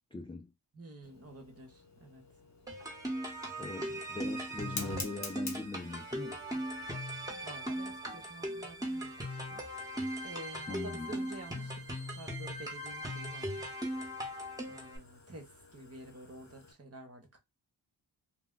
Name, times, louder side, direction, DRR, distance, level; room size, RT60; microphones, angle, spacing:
voice 1, 0.1-0.5 3.6-6.4 10.7-11.1, left 3 dB, 15° left, 0.3 m, -41 dB
voice 2, 0.7-2.2 7.4-9.6 10.2-11.8 12.1-13.7 14.7-17.4, right 2 dB, 30° right, 1.1 m, -50 dB
Fire, 1.0-16.7, left 3 dB, 35° left, 0.9 m, -50 dB
sound 1, 2.7-15.0, equal, 10° right, 1.1 m, -39 dB
2.2 x 2.2 x 3.8 m
wide cardioid pair, 85°, 45 cm